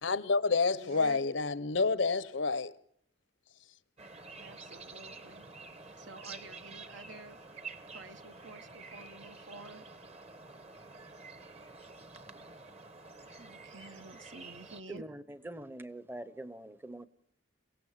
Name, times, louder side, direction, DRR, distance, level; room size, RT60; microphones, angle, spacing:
voice 1, 0.0-2.7, left 4 dB, 70° left, 0.8 m, -29 dB
voice 2, 0.7-1.2 4.4-5.4 5.9-7.4 7.9-9.9 11.8-11.9 13.4-15.0, right 1 dB, 70° right, 1.4 m, -49 dB
sound 1, 4.0-14.8, right 3 dB, 30° right, 1.3 m, -49 dB
voice 3, 14.9-17.1, right 1 dB, 10° right, 0.9 m, -44 dB
28.0 x 17.0 x 7.5 m
head